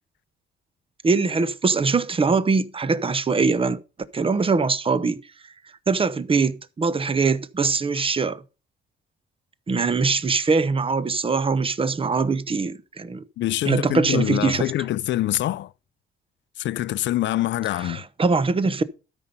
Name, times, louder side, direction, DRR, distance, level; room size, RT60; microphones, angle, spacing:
voice 1, 1.0-3.8 4.1-5.2 5.9-8.4 9.7-13.2 13.6-14.7 17.9-18.8, right 4 dB, 25° right, 0.9 m, -22 dB
voice 2, 13.4-15.7 16.6-18.0, left 14 dB, 65° left, 0.5 m, -25 dB
13.0 x 5.4 x 5.4 m
cardioid pair, 90°, 20 cm